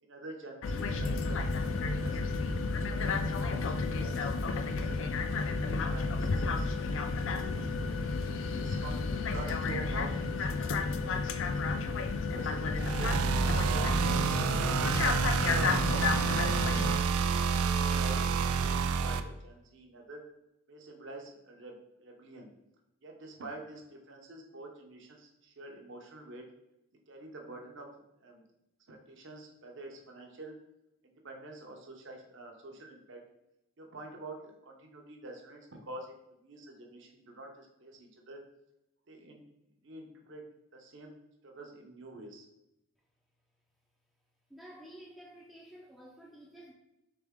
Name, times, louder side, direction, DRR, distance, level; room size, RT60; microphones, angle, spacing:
voice 1, 0.0-2.6 2.9-5.0 5.5-7.7 8.5-11.8 12.2-14.9 15.6-17.1 17.6-20.2 20.7-22.5 23.0-26.4 27.1-27.9 28.2-28.4 28.9-30.5 31.0-33.2 33.8-36.1 36.4-38.4 39.1-39.4 39.8-40.4 40.7-41.1 41.4-42.5, right 2 dB, 55° right, 2 dB, 0.7 m, -48 dB
sound 1, 0.6-17.0, left 4 dB, 60° left, 0.4 m, -32 dB
sound 2, 12.8-19.2, right 6 dB, 80° right, 0.3 m, -28 dB
voice 2, 44.5-46.7, right 1 dB, ahead, -5 dB, 0.4 m, -51 dB
3.7 x 3.4 x 3.5 m, 0.87 s
head